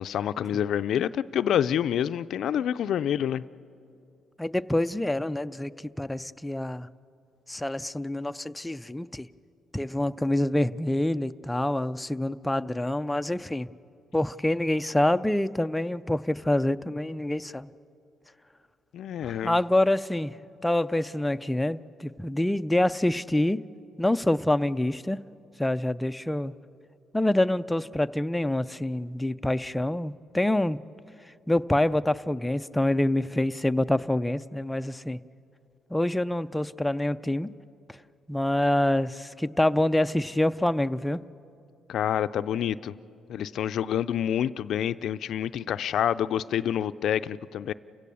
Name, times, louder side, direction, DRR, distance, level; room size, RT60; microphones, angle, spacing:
voice 1, 0.0-3.4 18.9-19.6 41.9-42.9 43.3-47.7, left 9 dB, 70° left, 13 dB, 0.4 m, -27 dB
voice 2, 4.4-5.7 6.0-6.9 7.5-9.3 9.7-13.7 14.1-17.7 19.2-20.4 20.6-23.6 24.0-25.2 25.6-26.5 27.1-30.8 31.5-35.2 35.9-37.5 38.3-41.2, left 1 dB, 10° left, 11 dB, 0.4 m, -26 dB
29.5 x 16.5 x 7.0 m, 2.6 s
cardioid pair, 90°, 0 cm